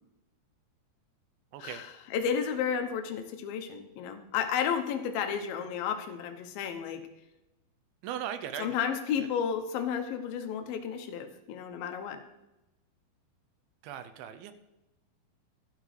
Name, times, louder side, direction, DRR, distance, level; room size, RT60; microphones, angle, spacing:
voice 1, 1.5-1.8 8.0-8.9 9.2-9.3 13.8-14.5, right 9 dB, 80° right, 10 dB, 2.3 m, -38 dB
voice 2, 2.1-7.1 8.6-12.2, left 7 dB, 75° left, 6 dB, 2.6 m, -32 dB
12.0 x 12.0 x 3.3 m, 0.97 s
omnidirectional pair, 4.6 m